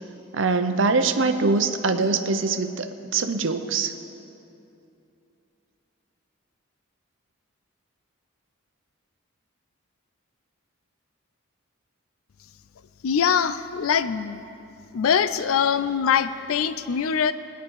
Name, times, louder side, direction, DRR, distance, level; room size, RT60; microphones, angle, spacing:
voice 1, 0.3-3.9, right 4 dB, 60° right, 8 dB, 0.7 m, -23 dB
voice 2, 13.0-14.4 14.9-17.3, left 7 dB, 80° left, 13 dB, 0.4 m, -23 dB
19.0 x 10.5 x 4.7 m, 2.8 s
head